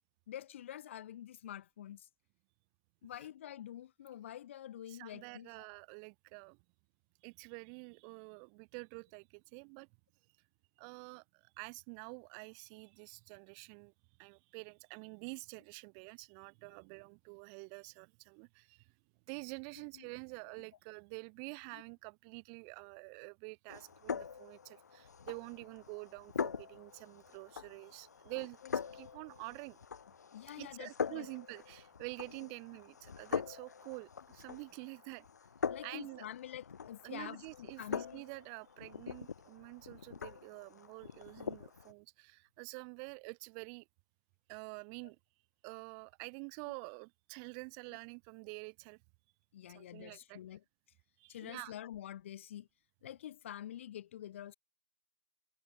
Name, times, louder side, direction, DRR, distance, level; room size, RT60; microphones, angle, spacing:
voice 1, 0.3-2.1 3.0-5.7 19.9-20.0 21.7-21.8 28.6-28.7 30.3-31.3 35.7-38.2 46.7-46.8 49.5-50.6 51.3-52.7 53.0-54.5, left 11 dB, 45° left, 1.7 m, -47 dB
voice 2, 4.9-6.6 7.2-9.9 10.8-13.9 14.2-18.9 19.3-29.8 30.6-35.2 35.8-36.3 37.0-43.8 44.5-45.2 45.6-49.0 49.7-50.4 51.2-51.7, right 40 dB or more, 25° right, 1.5 m, -48 dB
sound 1, 23.7-41.9, left 6 dB, 65° left, 1.2 m, -43 dB
hypercardioid pair, 145°, 10 cm